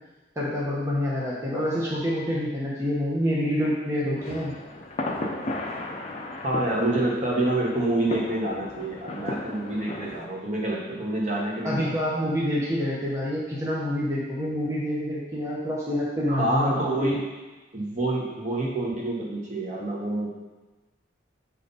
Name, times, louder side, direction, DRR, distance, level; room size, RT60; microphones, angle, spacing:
voice 1, 0.4-4.5 11.6-17.1, equal, 15° right, -6 dB, 1.1 m, -27 dB
sound 1, 4.2-10.3, left 2 dB, 35° left, 0.7 m, -35 dB
voice 2, 6.4-12.0 16.3-17.2 17.7-20.3, right 1 dB, 40° right, -3 dB, 1.3 m, -27 dB
7.4 x 3.8 x 4.0 m, 1.2 s
head